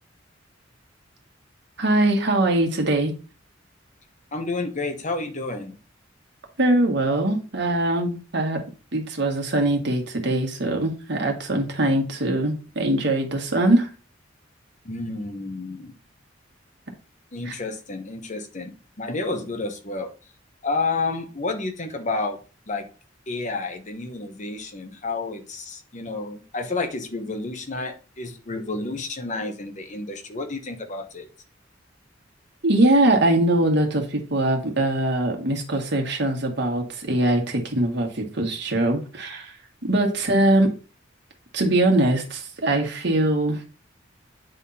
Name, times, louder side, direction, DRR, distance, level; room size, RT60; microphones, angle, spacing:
voice 1, 1.8-3.1 6.6-8.6 8.9-13.9 17.5-17.6 32.6-39.5 39.9-40.7 41.5-43.6, right 1 dB, 65° right, 2 dB, 1.7 m, -22 dB
voice 2, 4.3-5.8 14.8-15.9 17.3-18.7 19.0-20.1 20.6-22.4 22.7-22.9 23.3-31.3 39.9-40.0, left 3 dB, 40° left, 6 dB, 1.0 m, -30 dB
9.1 x 3.6 x 4.1 m, 0.35 s
head